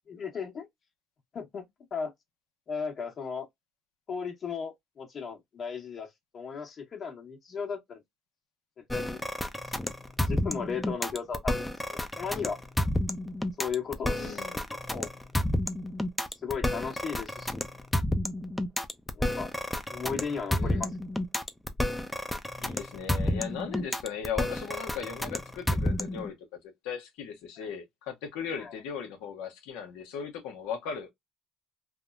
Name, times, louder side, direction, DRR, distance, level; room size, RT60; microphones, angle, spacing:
voice 1, 0.1-0.7 1.3-2.1 2.7-3.5 4.1-6.1 6.3-8.0 8.8-9.2 10.3-12.6 13.6-15.1 16.4-17.7 19.1-19.5 19.9-20.9 27.6-27.7 28.6-28.7, left 6 dB, 50° left, 1.3 m, -36 dB
sound 1, 8.9-26.3, left 1 dB, 10° left, 0.6 m, -30 dB
voice 2, 14.1-14.6 20.5-20.9 22.6-31.1, left 7 dB, 85° left, 1.1 m, -38 dB
3.4 x 2.1 x 2.5 m
supercardioid pair, 75°, 0 cm